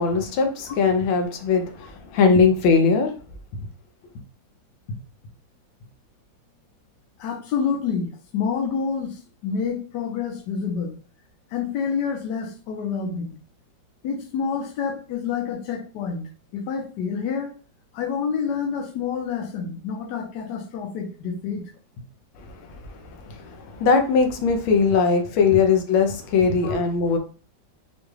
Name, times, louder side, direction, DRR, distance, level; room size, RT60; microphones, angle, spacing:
voice 1, 0.0-3.1 23.0-27.2, left 5 dB, 90° left, 1.5 m, -20 dB
voice 2, 7.2-11.0 11.5-13.4 14.0-16.3 16.5-17.5 17.9-21.6 26.6-26.8, left 6 dB, 70° left, 1.4 m, -28 dB
5.0 x 2.3 x 3.1 m
omnidirectional pair, 2.1 m